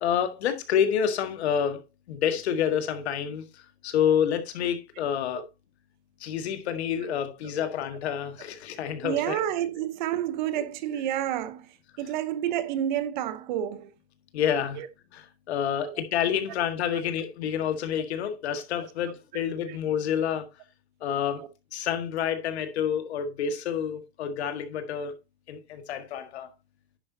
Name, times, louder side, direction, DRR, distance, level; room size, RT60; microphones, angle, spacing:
voice 1, 0.0-1.8 2.1-3.4 3.8-5.4 6.2-9.4 10.6-10.7 14.3-14.8 15.1-20.5 21.0-21.4 21.7-25.2 25.5-26.5, left 8 dB, 75° left, 1.8 m, -28 dB
voice 2, 9.0-11.7 12.0-13.9 14.8-14.9 15.8-16.0 16.9-17.0 18.8-18.9 19.7-19.8 21.4-21.5, right 11 dB, 45° right, 0.9 m, -30 dB
10.5 x 8.1 x 2.7 m
supercardioid pair, 170°, 33 cm